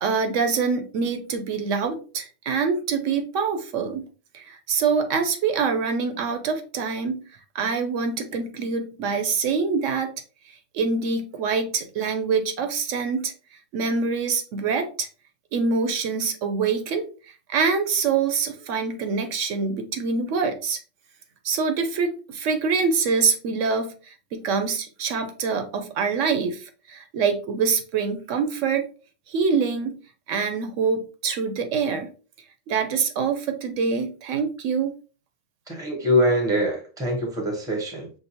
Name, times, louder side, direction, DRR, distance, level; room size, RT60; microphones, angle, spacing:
voice 1, 0.0-4.1 4.3-7.2 7.5-10.1 10.5-13.3 13.7-15.1 15.5-17.0 17.5-20.8 21.4-28.9 29.3-30.0 30.3-32.1 32.7-34.9, right 5 dB, 75° right, 7 dB, 0.9 m, -25 dB
voice 2, 35.7-38.1, equal, 5° right, 2 dB, 0.8 m, -23 dB
5.8 x 2.0 x 2.7 m, 0.36 s
omnidirectional pair, 1.3 m